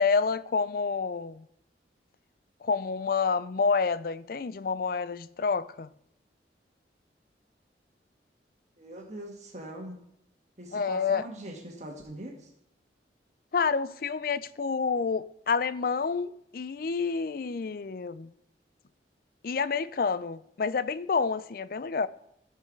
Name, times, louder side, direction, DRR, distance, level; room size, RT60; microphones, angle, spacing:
voice 1, 0.0-1.5 2.6-5.9 10.7-11.2 13.5-18.3 19.4-22.1, left 5 dB, 55° left, 0.4 m, -28 dB
voice 2, 8.8-10.0 10.6-12.5, right 1 dB, 40° right, 1.6 m, -42 dB
14.5 x 5.5 x 5.2 m
head